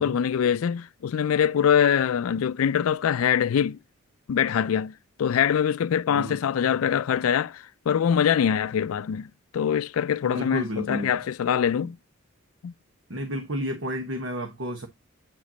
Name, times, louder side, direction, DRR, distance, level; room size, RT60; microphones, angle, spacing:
voice 1, 0.0-3.8 4.3-9.3 9.5-12.0 12.6-12.7, left 8 dB, 90° left, 0.4 m, -24 dB
voice 2, 6.1-6.4 6.7-6.8 10.2-11.2 13.1-14.9, equal, 65° right, 1.2 m, -32 dB
9.0 x 5.1 x 2.8 m
head